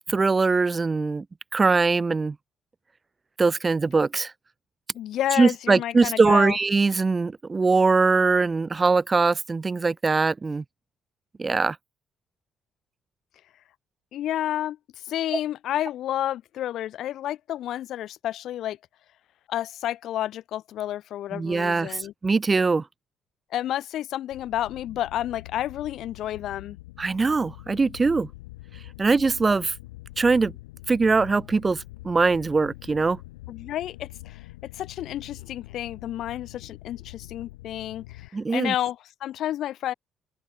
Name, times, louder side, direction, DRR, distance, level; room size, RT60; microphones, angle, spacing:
voice 1, 0.1-1.2 1.5-2.3 3.4-4.3 5.4-10.6 11.4-11.8 15.3-15.4 21.3-22.8 27.0-28.3 29.0-29.7 30.2-30.5 30.9-33.2 38.3-38.7, right 4 dB, 30° right, 1.5 m, -22 dB
voice 2, 4.9-6.6 14.1-14.8 15.0-18.8 19.5-22.1 23.5-26.8 33.5-34.5 34.7-39.9, left 12 dB, 65° left, 2.1 m, -30 dB
sound 1, 24.3-38.3, left 19 dB, 80° left, 3.3 m, -44 dB
open air
hypercardioid pair, 50°, 0 cm